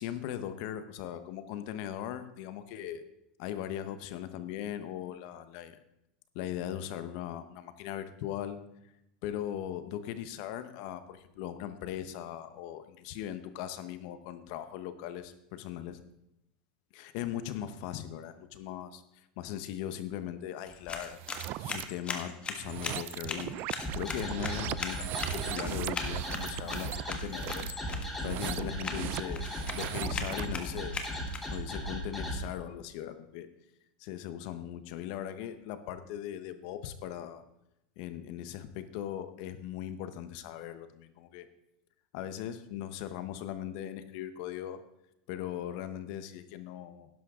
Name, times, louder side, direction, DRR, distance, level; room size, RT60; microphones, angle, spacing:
voice 1, 0.0-3.0 3.4-5.8 6.3-8.6 9.2-16.0 16.9-21.2 21.6-27.7 28.2-29.4 29.7-31.0 31.5-33.5 34.0-37.4 38.0-41.5 42.1-44.8 45.3-47.1, left 11 dB, 60° left, 11 dB, 1.1 m, -39 dB
sound 1, 20.6-31.8, left 4 dB, 25° left, 1.4 m, -41 dB
sound 2, 21.1-21.9 22.5-30.6, right 16 dB, 50° right, 0.4 m, -39 dB
sound 3, 23.8-32.4, left 1 dB, 5° left, 3.3 m, -37 dB
12.0 x 11.0 x 3.8 m, 0.83 s
supercardioid pair, 125°, 5 cm